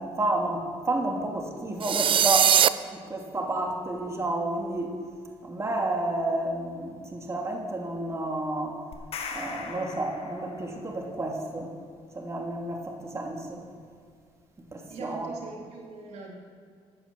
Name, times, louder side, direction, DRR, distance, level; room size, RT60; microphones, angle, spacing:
voice 1, 0.0-5.0 5.4-8.8 9.3-11.7 12.1-13.6 14.7-15.3, right 2 dB, 25° right, 0 dB, 2.5 m, -31 dB
sound 1, 1.8-2.7, right 9 dB, 50° right, 0.5 m, -20 dB
sound 2, 8.9-10.9, left 5 dB, 65° left, 1.7 m, -39 dB
voice 2, 14.9-16.3, right 4 dB, 75° right, -1 dB, 2.7 m, -41 dB
14.5 x 9.2 x 7.0 m, 2.1 s
cardioid pair, 80°, 11 cm